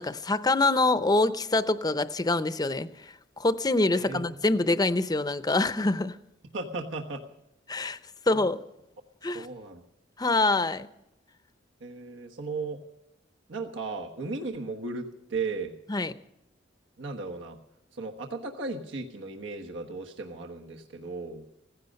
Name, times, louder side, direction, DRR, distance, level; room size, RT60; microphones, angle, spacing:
voice 1, 0.0-2.9 3.4-6.2 7.7-8.0 8.3-8.6 9.2-9.5 10.2-10.9 15.9-16.1, left 2 dB, 20° left, 0.6 m, -25 dB
voice 2, 3.9-4.4 6.5-7.2 8.3-8.5 9.3-9.8 11.8-12.8 13.5-15.7 17.0-17.6 17.9-21.4, right 3 dB, 80° right, 1.3 m, -36 dB
16.5 x 15.5 x 5.3 m
head